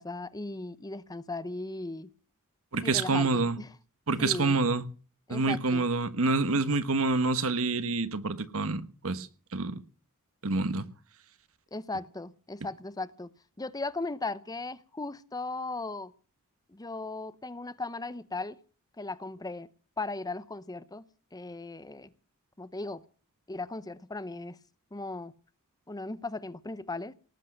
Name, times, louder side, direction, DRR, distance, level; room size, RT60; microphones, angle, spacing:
voice 1, 0.0-2.1 2.8-3.7 4.2-4.6 5.3-5.9 11.7-13.3 13.6-16.1 16.7-18.6 19.0-19.7 20.0-21.0 21.3-22.1 22.6-23.0 23.5-24.6 24.9-25.3 25.9-27.1, left 2 dB, 20° left, 0.7 m, -37 dB
voice 2, 2.7-3.6 4.1-4.9 5.3-9.3 9.5-9.8 10.4-10.9, right 3 dB, 70° right, 1.3 m, -27 dB
18.5 x 8.3 x 7.7 m
head